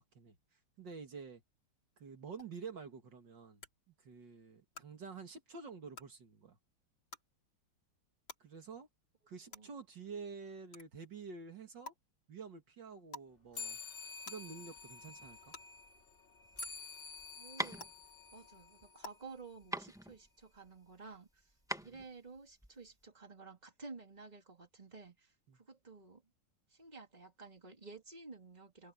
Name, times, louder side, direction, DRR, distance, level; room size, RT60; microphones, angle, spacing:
voice 1, 0.8-1.4 2.0-3.6 4.0-6.6 8.4-8.9 9.3-11.9 12.3-13.8 14.3-15.5 25.5-25.6, right 5 dB, 70° right, 2.7 m, -49 dB
sound 1, 2.4-2.5 3.6-3.7 4.7-4.8 5.9-6.0 7.1-7.2 8.3-8.4 9.5-9.6 10.7-10.8 11.8-11.9 13.1-13.3 14.2-14.3 15.5-15.6 16.6-16.7 17.8-17.9 19.0-19.1, left 3 dB, 90° left, 5.2 m, -48 dB
sound 2, 13.5-19.4, left 5 dB, 25° left, 3.5 m, -49 dB
sound 3, 16.4-23.0, equal, ahead, 0.9 m, -44 dB
voice 2, 17.3-17.9 18.3-26.2 26.7-28.9, right 4 dB, 20° right, 3.1 m, -53 dB
omnidirectional pair, 2.1 m